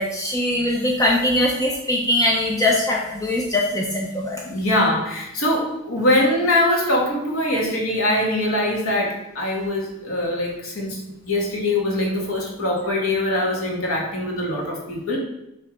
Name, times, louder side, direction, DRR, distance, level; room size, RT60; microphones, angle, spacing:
voice 1, 0.0-4.4, left 1 dB, 15° left, -1 dB, 0.6 m, -21 dB
voice 2, 4.4-15.2, left 1 dB, 65° left, -1 dB, 1.7 m, -22 dB
6.3 x 3.4 x 5.1 m, 0.86 s
head